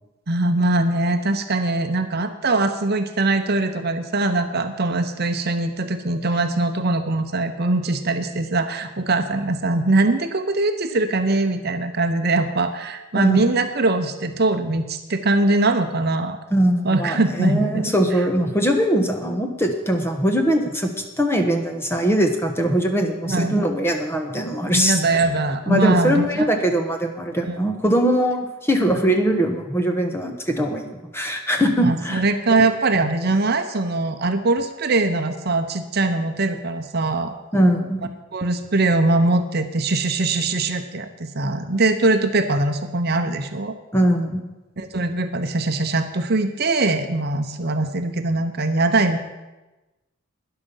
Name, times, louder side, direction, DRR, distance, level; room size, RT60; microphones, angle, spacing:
voice 1, 0.3-16.4 16.8-17.9 23.3-23.6 24.7-26.5 27.5-27.6 31.8-37.4 38.3-43.7 44.8-49.2, right 2 dB, 50° right, 7 dB, 0.8 m, -22 dB
voice 2, 16.5-20.9 21.2-25.2 25.7-32.2 32.5-32.6 37.5-38.1 43.9-44.4, right 1 dB, 10° left, 4 dB, 1.2 m, -21 dB
12.5 x 10.5 x 5.6 m, 1.1 s
head